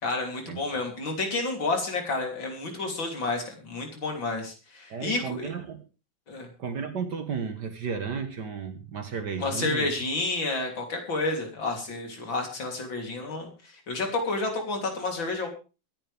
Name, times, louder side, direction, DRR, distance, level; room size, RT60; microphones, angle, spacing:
voice 1, 0.0-5.5 6.3-6.5 9.4-15.5, left 3 dB, 75° left, 2 dB, 4.1 m, -30 dB
voice 2, 4.9-5.8 6.6-9.9, right 6 dB, 60° right, 7 dB, 1.9 m, -33 dB
23.5 x 10.0 x 3.5 m, 0.33 s
omnidirectional pair, 2.1 m